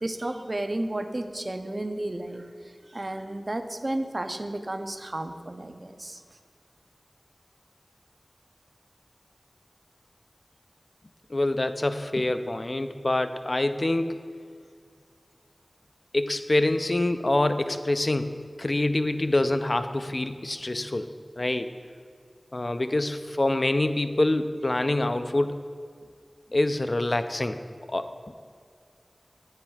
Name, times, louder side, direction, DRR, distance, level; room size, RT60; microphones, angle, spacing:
voice 1, 0.0-2.5 2.9-6.2, right 1 dB, 50° right, 7 dB, 0.6 m, -32 dB
voice 2, 11.3-14.2 16.1-21.7 22.5-25.6 26.5-27.6 27.9-28.1, left 2 dB, 50° left, 9 dB, 0.4 m, -26 dB
12.5 x 8.8 x 2.4 m, 2.1 s
wide cardioid pair, 45°, 0 cm